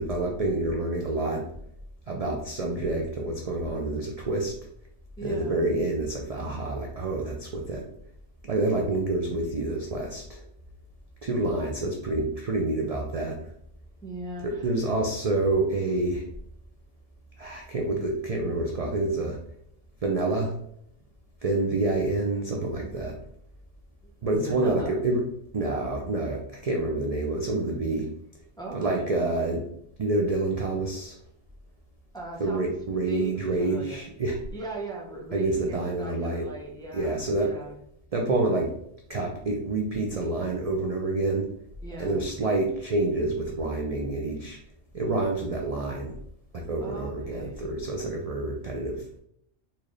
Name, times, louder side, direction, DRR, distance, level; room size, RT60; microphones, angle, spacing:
voice 1, 0.0-1.5 2.1-4.5 5.2-7.9 8.4-10.4 11.2-13.4 14.4-16.2 17.4-19.4 20.0-20.5 21.4-23.1 24.2-25.2 25.5-28.1 28.7-29.7 30.0-31.2 32.4-34.4 35.3-36.5 36.9-37.5 38.1-38.7 39.1-41.5 42.0-44.6 44.9-46.1 46.5-49.0, right 2 dB, 50° right, 0 dB, 0.4 m, -27 dB
voice 2, 5.2-5.6 14.0-14.7 24.0-25.0 28.6-29.1 32.1-32.7 33.1-34.1 34.5-37.8 41.8-42.3 46.8-47.7, right 2 dB, 5° left, -2 dB, 0.5 m, -39 dB
4.2 x 2.5 x 3.1 m, 0.71 s
omnidirectional pair, 1.2 m